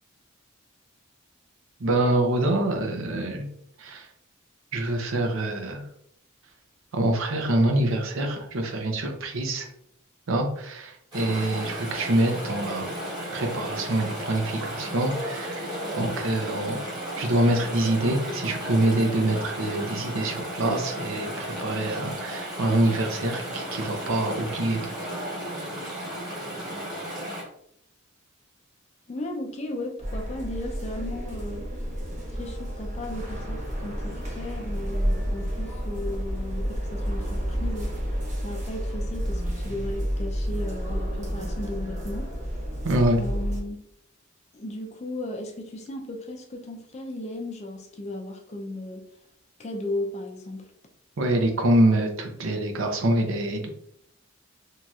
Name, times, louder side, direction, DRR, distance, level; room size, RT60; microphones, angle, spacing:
voice 1, 1.8-3.5 3.8-4.1 4.7-5.9 6.9-9.7 10.3-12.9 13.3-16.8 17.2-24.9 42.8-43.2 51.2-53.7, right 1 dB, 65° right, 3 dB, 0.6 m, -25 dB
Chatter / Stream, 11.1-27.4, equal, 20° right, 1.2 m, -34 dB
voice 2, 29.1-31.6 32.3-38.1 38.4-42.3 43.2-43.8 44.5-49.0 49.6-50.6, left 1 dB, 30° left, 2 dB, 0.4 m, -35 dB
sound 1, 30.0-43.6, equal, 35° right, 0.7 m, -30 dB
3.0 x 2.7 x 2.3 m, 0.72 s
head